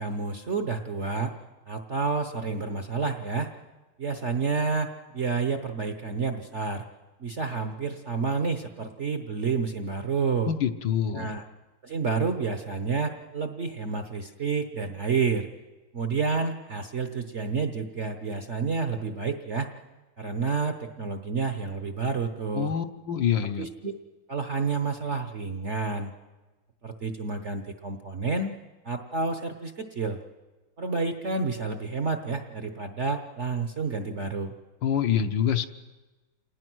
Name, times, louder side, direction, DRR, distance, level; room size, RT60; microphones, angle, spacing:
voice 1, 0.0-1.3 1.7-3.5 4.0-6.8 7.2-10.5 11.1-11.4 11.8-15.5 15.9-19.7 20.2-22.7 23.6-23.9 24.3-26.1 26.8-28.5 28.8-30.2 30.8-34.5, right 4 dB, 45° right, 7 dB, 1.0 m, -29 dB
voice 2, 10.5-11.3 22.5-23.7 34.8-35.7, left 8 dB, 65° left, 8 dB, 1.5 m, -26 dB
27.5 x 19.0 x 6.2 m, 1.2 s
omnidirectional pair, 2.3 m